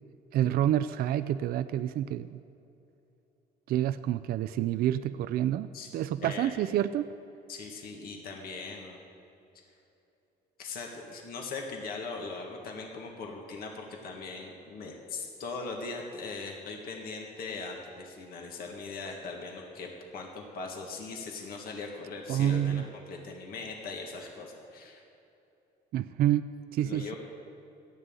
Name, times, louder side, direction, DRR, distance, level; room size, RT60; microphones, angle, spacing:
voice 1, 0.3-2.4 3.7-7.0 22.3-22.8 25.9-27.1, right 11 dB, 65° right, 11 dB, 0.4 m, -28 dB
voice 2, 6.2-6.5 7.5-9.0 10.6-19.9 20.1-25.0 26.8-27.1, left 4 dB, 60° left, 1 dB, 1.8 m, -40 dB
17.5 x 12.5 x 3.9 m, 2.9 s
cardioid pair, 110°, 17 cm